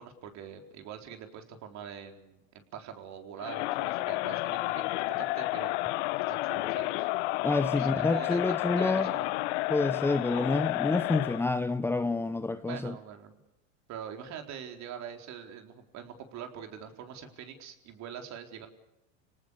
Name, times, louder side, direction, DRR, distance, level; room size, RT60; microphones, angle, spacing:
voice 1, 0.0-5.7 6.3-7.1 7.8-9.3 12.6-13.4 13.9-18.7, right 8 dB, 40° right, 4.2 m, -44 dB
Crowd, 3.4-11.5, left 19 dB, 55° left, 0.9 m, -31 dB
voice 2, 7.4-9.1 9.7-13.0, left 3 dB, 5° left, 0.7 m, -28 dB
30.0 x 19.0 x 7.0 m
hypercardioid pair, 105°, 40 cm